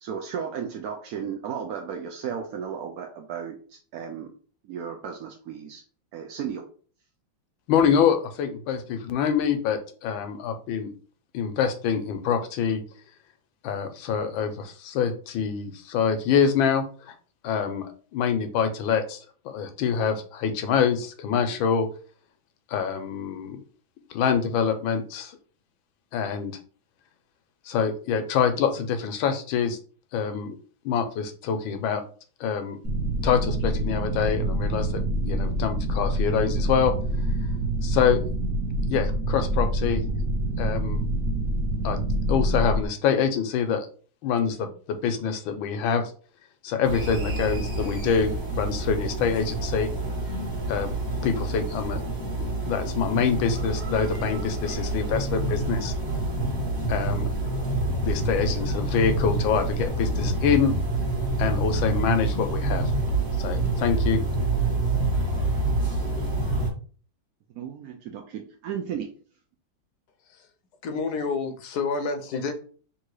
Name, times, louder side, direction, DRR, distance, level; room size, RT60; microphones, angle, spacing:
voice 1, 0.0-4.3 4.6-5.8 6.1-6.6 67.5-69.1, right 7 dB, 70° right, 3 dB, 0.8 m, -34 dB
voice 2, 7.7-10.9 11.3-12.8 13.6-17.1 17.4-21.9 22.7-23.6 24.1-25.4 26.1-26.5 27.7-29.8 30.1-30.6 30.8-32.0 32.4-32.8 33.2-36.9 37.8-38.2 38.9-40.0 40.6-41.0 41.8-42.0 42.3-43.9 44.2-46.0 46.6-49.9 50.7-50.9 51.2-52.0 52.4-55.9 56.9-57.3 58.0-60.7 61.4-62.9 63.4-64.2, left 7 dB, 85° left, 8 dB, 1.4 m, -25 dB
sound 1, 32.8-42.9, right 1 dB, 50° right, 1.1 m, -26 dB
sound 2, 46.8-66.7, right 2 dB, 25° right, 1.4 m, -27 dB
voice 3, 70.8-72.5, left 4 dB, 65° left, 7 dB, 1.0 m, -29 dB
3.7 x 2.8 x 4.7 m, 0.42 s
omnidirectional pair, 2.1 m